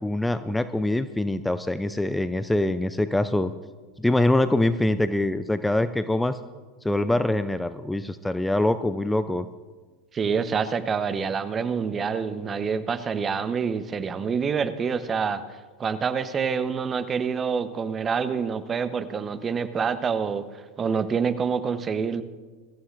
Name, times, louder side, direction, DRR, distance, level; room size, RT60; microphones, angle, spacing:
voice 1, 0.0-3.5 4.0-6.4 6.8-9.5, left 1 dB, 5° left, 12 dB, 0.5 m, -24 dB
voice 2, 10.1-15.4 15.8-22.2, right 6 dB, 25° right, 12 dB, 0.9 m, -27 dB
23.0 x 14.0 x 2.6 m, 1.4 s
figure-of-eight pair, 85°, 0 cm